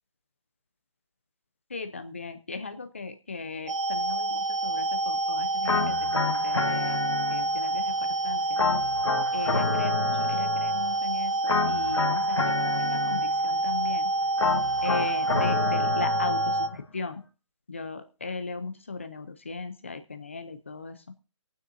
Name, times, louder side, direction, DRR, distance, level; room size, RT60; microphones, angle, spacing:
voice 1, 1.7-7.0 7.3-7.9 8.2-8.6 9.3-14.1 14.8-17.2 17.7-21.0, left 4 dB, 25° left, 9 dB, 0.6 m, -37 dB
sound 1, 3.7-16.7, right 2 dB, 75° right, 1.0 m, -27 dB
sound 2, 5.6-7.7 8.6-10.9 11.5-13.6 14.4-16.8, left 4 dB, 65° left, 1.5 m, -29 dB
22.0 x 9.2 x 2.6 m, 0.34 s
hypercardioid pair, 180°, 16 cm